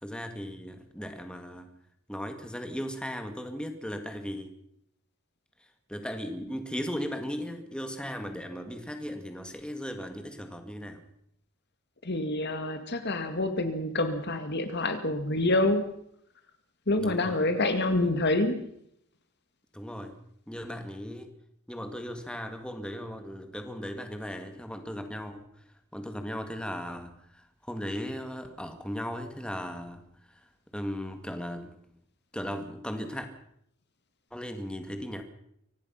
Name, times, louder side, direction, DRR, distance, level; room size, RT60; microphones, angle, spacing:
voice 1, 0.0-1.7 2.1-4.5 5.9-11.0 17.0-17.4 19.7-20.1 20.5-21.3 21.7-25.4 25.9-27.4 27.7-30.0 30.7-31.7 32.3-33.3 34.3-35.2, equal, 5° left, 6 dB, 2.0 m, -37 dB
voice 2, 12.0-15.9 16.9-18.6, left 2 dB, 50° left, 8 dB, 2.1 m, -27 dB
25.0 x 18.0 x 5.7 m, 0.73 s
head